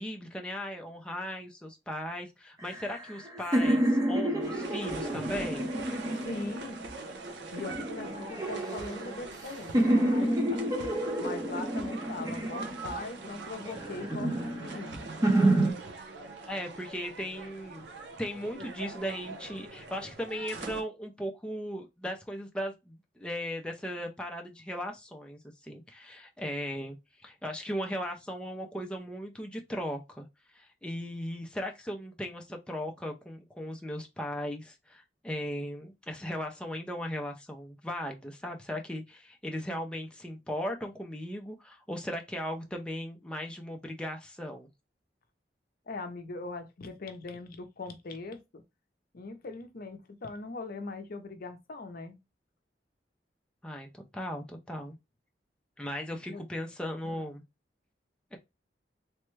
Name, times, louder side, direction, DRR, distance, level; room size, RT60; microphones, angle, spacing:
voice 1, 0.0-5.7 16.5-17.9 18.2-30.2 30.5-44.7 53.6-54.9 55.8-57.4 58.3-58.4, equal, 5° left, 0.4 m, -37 dB
sound 1, 2.6-6.9 7.6-9.4 9.7-13.1 13.7-15.7, right 1 dB, 20° right, 0.7 m, -29 dB
sound 2, 4.4-20.8, right 3 dB, 80° right, 0.7 m, -43 dB
voice 2, 6.1-6.8 7.5-10.8 11.2-15.1 45.9-48.6 49.1-52.2 56.2-56.4 57.0-57.4, left 3 dB, 55° left, 0.6 m, -41 dB
3.3 x 2.1 x 3.0 m
head